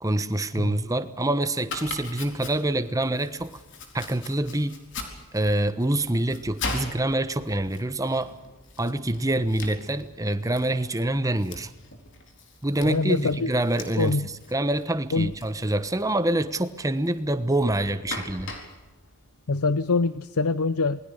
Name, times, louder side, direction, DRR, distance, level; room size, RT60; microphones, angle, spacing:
voice 1, 0.0-3.6 3.9-4.7 5.3-8.3 8.8-11.7 12.6-18.5, right 1 dB, 15° right, 11 dB, 1.2 m, -26 dB
Domestic sounds home sounds, 1.6-20.1, left 3 dB, 55° left, 4.2 m, -41 dB
voice 2, 12.8-13.5 14.0-14.3 15.1-15.3 19.5-21.0, left 3 dB, 85° left, 15 dB, 0.7 m, -24 dB
28.0 x 20.5 x 6.7 m, 1.1 s
head